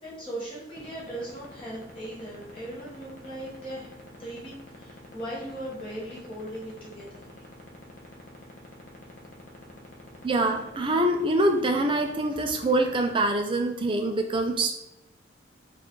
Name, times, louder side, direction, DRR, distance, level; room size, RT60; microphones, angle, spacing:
voice 1, 0.0-3.9 4.2-7.3, right 1 dB, 25° left, -7 dB, 1.1 m, -38 dB
sound 1, 0.8-13.1, left 2 dB, 45° left, 0.7 m, -45 dB
voice 2, 10.2-14.7, right 1 dB, 25° right, 4 dB, 0.4 m, -25 dB
4.1 x 2.4 x 3.0 m, 0.87 s
head